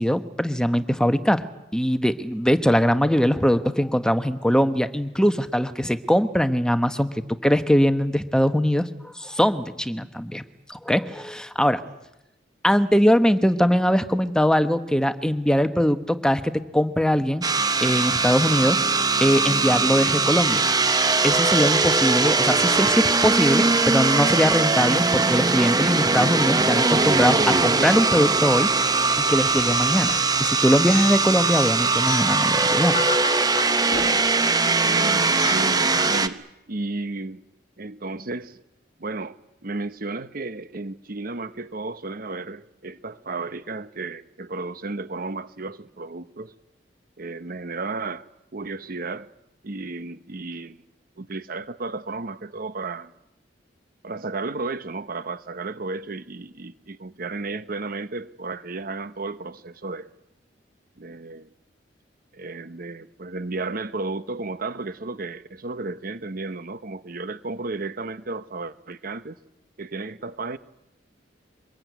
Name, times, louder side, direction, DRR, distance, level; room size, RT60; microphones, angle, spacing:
voice 1, 0.0-1.4 1.7-7.1 7.4-10.4 10.7-11.8 12.6-17.4 17.8-18.8 19.2-20.6 21.2-28.7 29.2-30.1 30.4-33.0, equal, 5° left, 1.2 m, -21 dB
sound 1, 17.4-36.3, right 3 dB, 20° right, 1.1 m, -21 dB
sound 2, 29.5-30.3 30.9-32.5 32.9-34.4 35.4-35.7, left 7 dB, 45° left, 1.5 m, -33 dB
voice 2, 34.5-37.4 37.8-38.6 39.0-46.5 47.2-48.3 48.5-49.3 49.6-50.8 51.2-53.1 54.0-60.1 61.0-61.5 62.3-69.4 69.8-70.6, right 3 dB, 55° right, 1.0 m, -33 dB
24.5 x 21.5 x 9.4 m
head